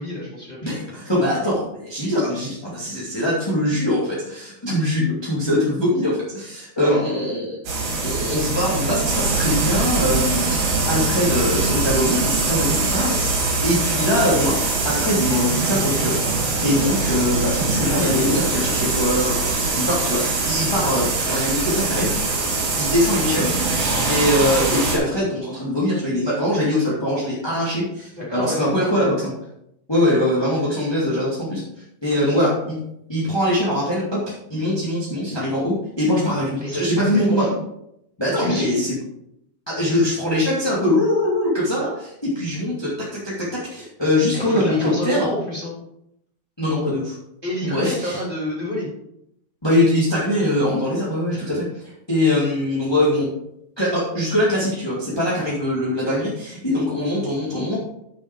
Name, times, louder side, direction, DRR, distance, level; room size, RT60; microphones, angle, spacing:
voice 1, 0.0-0.6 1.0-1.1 6.8-7.1 23.2-23.6 28.2-29.1 32.2-32.4 36.6-37.6 38.3-38.8 44.3-45.7 47.4-48.9 51.3-51.5, left 1 dB, 15° right, -5 dB, 3.2 m, -29 dB
voice 2, 0.6-7.6 8.0-10.6 10.9-14.6 14.8-19.3 19.7-22.1 22.8-23.5 24.1-29.3 29.9-31.6 32.0-32.8 33.1-37.5 38.2-38.9 39.7-45.3 46.6-47.1 47.6-48.2 49.6-51.6 52.1-53.3 53.8-57.8, left 1 dB, 10° left, -7 dB, 1.3 m, -22 dB
sound 1, 7.7-25.0, right 3 dB, 75° right, 4.8 m, -22 dB
8.3 x 7.0 x 4.6 m, 0.78 s
omnidirectional pair, 4.6 m